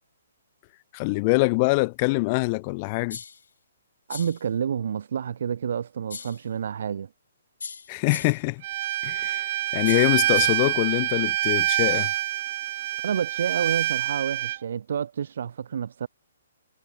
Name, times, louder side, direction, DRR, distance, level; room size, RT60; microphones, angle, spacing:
voice 1, 0.9-3.2 7.9-8.6 9.0-12.1, left 27 dB, 35° left, 3.6 m, -24 dB
sound 1, 3.1-3.5 4.1-4.5 6.1-6.5 7.6-8.5 9.9-10.7, left 5 dB, 75° left, 7.6 m, -39 dB
voice 2, 4.1-7.1 13.0-16.1, right 8 dB, 65° right, 3.6 m, -29 dB
Bowed string instrument, 8.6-14.6, right 14 dB, 45° right, 1.3 m, -26 dB
hypercardioid pair, 140°, 0 cm